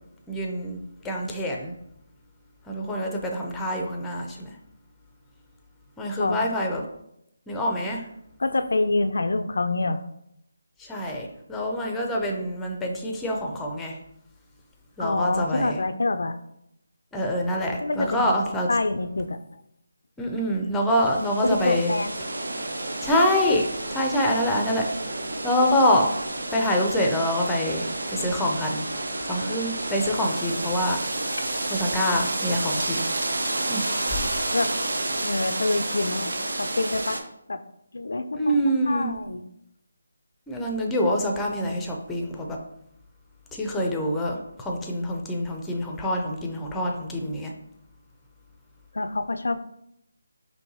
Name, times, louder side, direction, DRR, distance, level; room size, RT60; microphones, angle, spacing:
voice 1, 0.3-0.8 1.0-1.7 2.7-4.5 6.0-6.8 7.5-8.0 10.8-14.0 15.0-15.8 17.1-18.7 20.2-21.9 23.0-24.9 25.4-26.1 26.5-31.0 31.7-33.1 33.7-34.3 38.3-39.1 40.5-42.6 43.5-47.5, equal, 5° left, 1 dB, 0.5 m, -26 dB
voice 2, 8.4-10.0 15.0-16.4 17.8-18.3 18.7-19.4 21.4-22.2 31.4-31.5 34.5-34.7 35.2-37.2 37.5-37.6 37.9-39.4 48.9-49.7, left 2 dB, 70° left, 9 dB, 0.3 m, -26 dB
sound 1, 20.9-37.2, right 2 dB, 75° right, 0.6 m, -30 dB
4.5 x 3.0 x 2.8 m, 0.78 s
figure-of-eight pair, 160°, 0 cm